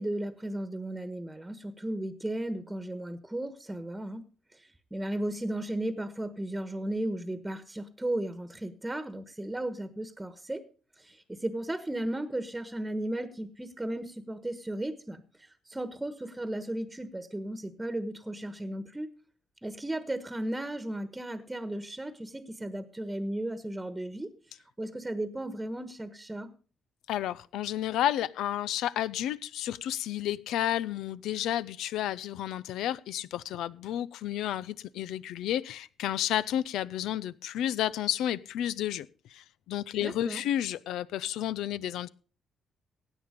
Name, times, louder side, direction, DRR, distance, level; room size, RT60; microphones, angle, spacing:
voice 1, 0.0-4.3 4.5-10.6 11.0-19.1 19.6-24.3 24.8-26.5 40.0-40.4, right 1 dB, 10° right, 11 dB, 1.3 m, -35 dB
voice 2, 27.1-42.1, left 12 dB, 85° left, 18 dB, 0.6 m, -31 dB
16.5 x 9.0 x 5.1 m, 0.39 s
cardioid pair, 90°, 0 cm